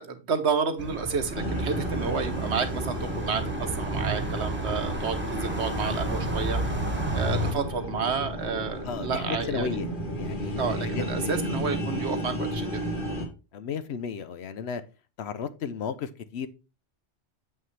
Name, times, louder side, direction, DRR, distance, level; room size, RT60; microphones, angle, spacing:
voice 1, 0.0-6.6 7.1-9.9 10.6-12.8, right 5 dB, 70° right, 1.2 m, -30 dB
sound 1, 0.8-7.5, right 2 dB, 10° right, 1.3 m, -31 dB
sound 2, 1.3-13.3, equal, 45° left, 1.8 m, -33 dB
voice 2, 8.8-9.9 10.2-11.5 13.5-14.8 15.2-16.5, left 6 dB, 70° left, 0.9 m, -34 dB
7.5 x 5.6 x 3.2 m
omnidirectional pair, 1.2 m